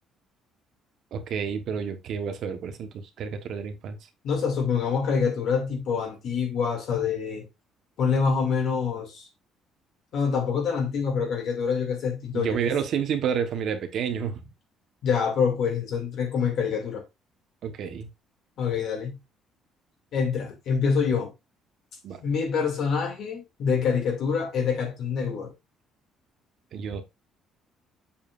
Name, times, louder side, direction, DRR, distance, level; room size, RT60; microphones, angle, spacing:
voice 1, 1.1-4.0 12.3-14.4 17.6-18.1 22.0-22.2 26.7-27.0, right 7 dB, 50° right, 1.1 m, -29 dB
voice 2, 4.2-7.4 8.0-9.3 10.1-12.6 15.0-17.0 18.6-19.2 20.1-21.3 22.2-25.5, left 6 dB, 55° left, 2.3 m, -26 dB
7.4 x 7.1 x 2.5 m
cardioid pair, 165°, 0 cm